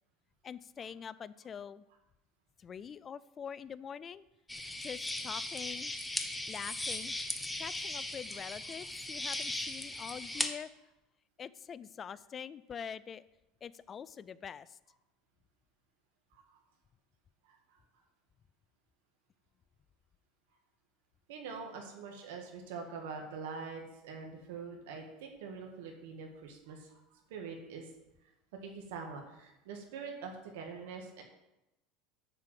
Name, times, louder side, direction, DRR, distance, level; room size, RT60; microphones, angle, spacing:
voice 1, 0.4-1.8 2.6-4.2 4.8-5.9 6.5-10.7 11.4-13.2 13.6-14.8, left 7 dB, 25° left, 16 dB, 0.3 m, -45 dB
sound 1, 4.5-10.5, left 2 dB, 5° left, 0.7 m, -38 dB
voice 2, 17.4-17.8 21.3-27.9 28.6-31.2, right 5 dB, 85° right, 3 dB, 1.8 m, -44 dB
9.9 x 4.8 x 7.5 m, 0.93 s
supercardioid pair, 155°, 0 cm